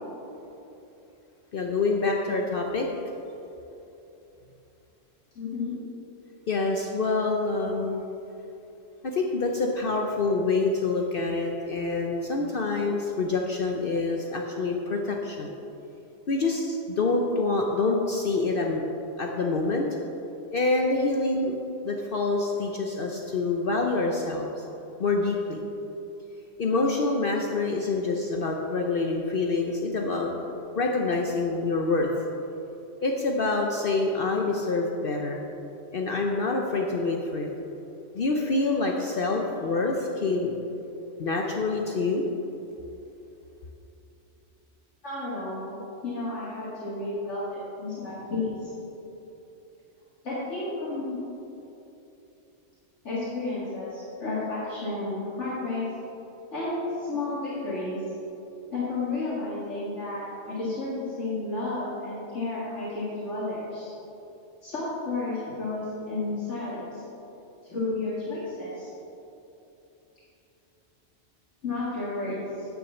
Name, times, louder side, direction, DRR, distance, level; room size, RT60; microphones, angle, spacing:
voice 1, 1.5-2.9 6.5-8.0 9.1-15.5 16.3-18.8 19.2-19.9 20.5-21.6 21.8-24.5 25.0-25.6 26.6-30.3 30.8-32.1 33.0-35.4 35.9-37.5 38.1-40.5 41.2-42.2, left 3 dB, 50° left, 1 dB, 0.9 m, -26 dB
voice 2, 5.4-5.8 45.0-48.7 50.2-51.2 53.0-55.9 56.5-58.0 58.7-63.9 64.6-67.0 67.6-68.9 71.6-72.7, left 2 dB, 75° left, -9 dB, 2.3 m, -32 dB
10.0 x 6.3 x 7.1 m, 3.0 s
omnidirectional pair, 1.2 m